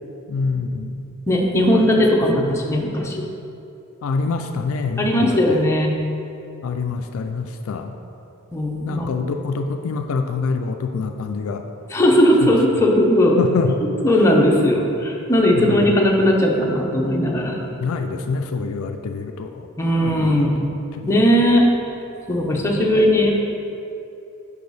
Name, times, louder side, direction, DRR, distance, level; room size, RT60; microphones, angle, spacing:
voice 1, 0.3-1.0 1.7-1.9 4.0-5.7 6.6-7.9 8.8-11.7 12.4-12.5 13.4-13.8 15.5-16.0 17.8-19.7 20.0-20.4 21.0-21.2 22.5-22.8, left 4 dB, 65° left, 5 dB, 0.3 m, -26 dB
voice 2, 1.3-3.2 5.0-6.0 8.5-9.1 11.9-13.4 14.0-17.6 19.8-20.6 21.1-21.7 22.3-23.3, equal, 10° left, -2 dB, 0.7 m, -17 dB
6.6 x 5.4 x 4.0 m, 2.7 s
head